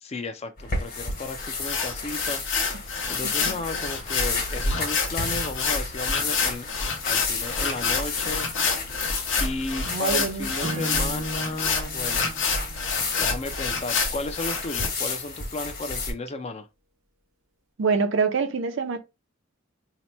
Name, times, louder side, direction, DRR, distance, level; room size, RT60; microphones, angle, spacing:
voice 1, 0.0-6.7 7.0-8.5 9.4-12.4 13.2-16.7, left 2 dB, 30° left, 0.4 m, -34 dB
sound 1, 0.6-16.1, left 4 dB, 45° left, 1.2 m, -33 dB
sound 2, 1.4-14.9, left 4 dB, 65° left, 0.8 m, -28 dB
voice 2, 9.9-10.8 17.8-19.0, right 5 dB, 65° right, 0.5 m, -26 dB
Acoustic guitar / Strum, 10.6-13.9, right 2 dB, 90° right, 0.9 m, -37 dB
2.9 x 2.1 x 4.1 m
head